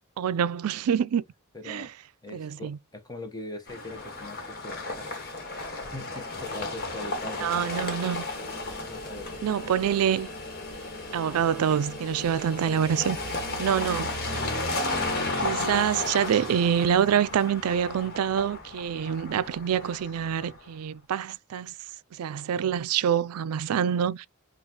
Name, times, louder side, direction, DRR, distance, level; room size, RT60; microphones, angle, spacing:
voice 1, 0.2-1.2 1.7-1.9 2.3-2.8 7.4-8.3 9.4-10.3 11.1-13.2 13.6-14.1 15.4-21.7 22.2-24.3, right 8 dB, 85° right, 0.4 m, -26 dB
voice 2, 1.5-1.9 2.2-5.2 5.6-7.7 8.9-9.8 12.6-13.1, left 1 dB, 20° left, 0.8 m, -42 dB
sound 1, 3.7-20.6, left 2 dB, 45° left, 1.4 m, -34 dB
5.5 x 2.4 x 2.8 m
head